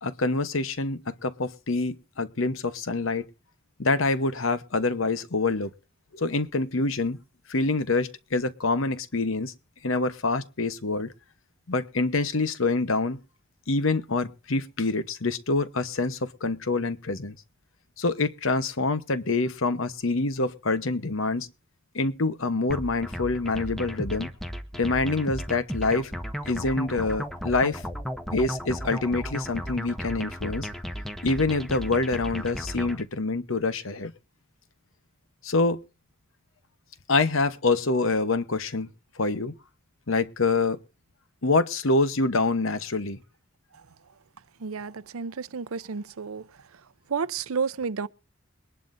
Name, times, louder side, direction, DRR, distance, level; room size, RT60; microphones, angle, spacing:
voice 1, 0.0-3.3 3.8-5.7 6.1-7.2 7.5-9.5 9.8-11.1 11.7-13.2 13.7-17.4 18.0-21.5 21.9-24.3 24.8-26.1 26.4-27.8 28.3-30.7 31.2-34.1 35.4-35.8 37.1-38.9 39.2-39.5 40.1-40.8 41.4-43.2, left 3 dB, 70° left, 1.0 m, -26 dB
sound 1, 22.7-33.0, equal, ahead, 0.9 m, -35 dB
voice 2, 44.6-46.5 47.1-48.1, right 5 dB, 85° right, 0.6 m, -31 dB
22.0 x 11.0 x 2.6 m
head